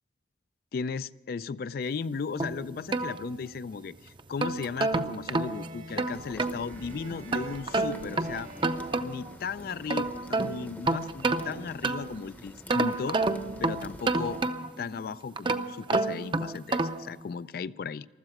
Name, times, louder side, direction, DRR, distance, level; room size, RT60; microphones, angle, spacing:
voice 1, 0.7-8.5 9.0-13.2 13.6-14.4 14.8-18.1, left 5 dB, 55° left, 16 dB, 0.3 m, -36 dB
sound 1, 2.4-3.7 4.2-6.6 7.3-9.3 9.7-12.2 12.7-14.9 15.4-17.1, right 3 dB, 30° right, 0.6 m, -29 dB
sound 2, 5.2-9.8, right 2 dB, 45° right, 1.1 m, -51 dB
sound 3, 6.1-14.4, equal, 10° left, 0.7 m, -47 dB
15.5 x 13.0 x 5.9 m, 1.3 s
head